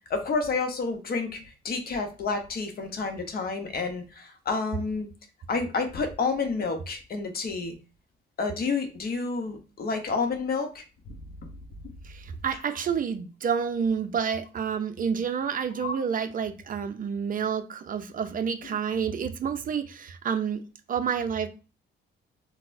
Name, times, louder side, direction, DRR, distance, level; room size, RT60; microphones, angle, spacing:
voice 1, 0.1-5.1 5.5-7.7 8.4-11.5 15.8-16.0, left 4 dB, 50° left, 0.8 m, -30 dB
voice 2, 12.0-20.6 20.9-21.5, right 7 dB, 45° right, 0.4 m, -29 dB
4.1 x 2.0 x 2.6 m
cardioid pair, 90°, 20 cm